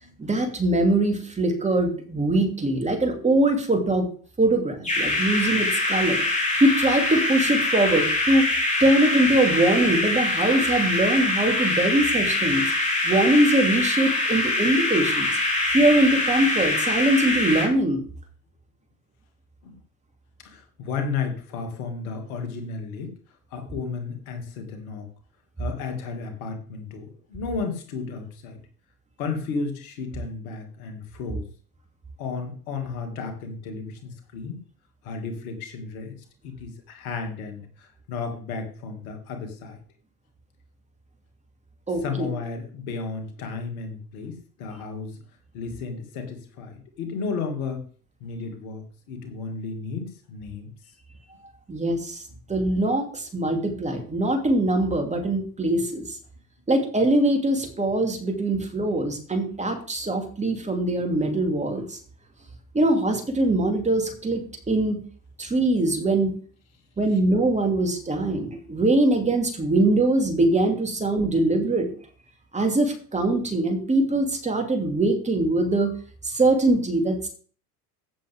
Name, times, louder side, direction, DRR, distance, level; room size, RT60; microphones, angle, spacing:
voice 1, 0.2-4.1 4.4-6.2 6.6-8.5 8.8-12.7 13.0-15.3 15.7-18.0 41.9-42.3 51.7-52.2 52.5-56.1 56.7-62.0 62.7-65.0 65.4-66.3 67.0-71.9 72.5-75.9 76.2-77.3, right 2 dB, 15° right, 4 dB, 3.0 m, -22 dB
sound 1, 4.8-17.7, left 2 dB, 15° left, 4.6 m, -24 dB
voice 2, 20.4-23.2 23.5-25.1 25.6-28.6 29.2-31.5 32.2-34.6 35.0-39.8 42.0-45.2 45.5-47.9 48.2-50.7 67.1-67.2, left 4 dB, 60° left, 5 dB, 2.6 m, -33 dB
15.5 x 7.4 x 3.7 m, 0.44 s
figure-of-eight pair, 75°, 48 cm